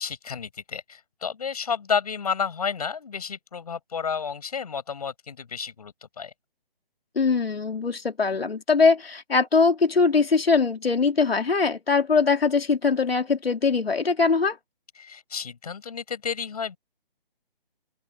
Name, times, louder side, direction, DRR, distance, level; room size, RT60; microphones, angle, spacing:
voice 1, 0.0-6.3 15.0-16.8, left 6 dB, 40° left, 6.1 m, -31 dB
voice 2, 7.2-14.6, left 4 dB, 85° left, 3.5 m, -22 dB
open air
hypercardioid pair, 175°, 29 cm